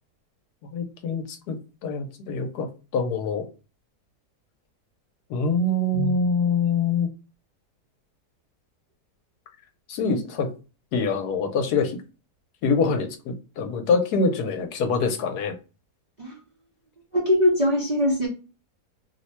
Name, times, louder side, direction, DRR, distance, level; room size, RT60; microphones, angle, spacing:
voice 1, 0.7-1.6 1.8-3.5 5.3-7.1 9.9-10.5 10.9-12.0 12.6-15.5, left 4 dB, 80° left, 6 dB, 1.2 m, -25 dB
voice 2, 17.1-18.3, left 1 dB, 35° right, -4 dB, 0.7 m, -22 dB
3.0 x 2.1 x 4.1 m, 0.33 s
omnidirectional pair, 1.7 m